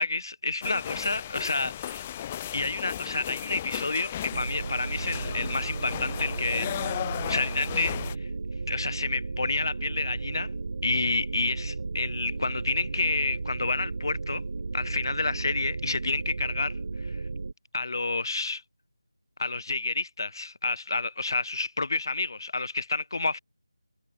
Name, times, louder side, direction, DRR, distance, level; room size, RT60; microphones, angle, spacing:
voice 1, 0.0-2.0 2.5-7.0 7.3-8.3 8.7-10.5 10.8-14.4 14.7-17.2 17.7-18.6 19.4-23.4, left 3 dB, 50° left, 4.4 m, -29 dB
sound 1, 0.6-8.1, left 11 dB, 15° left, 1.5 m, -35 dB
sound 2, 4.3-17.5, right 3 dB, 40° right, 6.5 m, -34 dB
figure-of-eight pair, 170°, 3 cm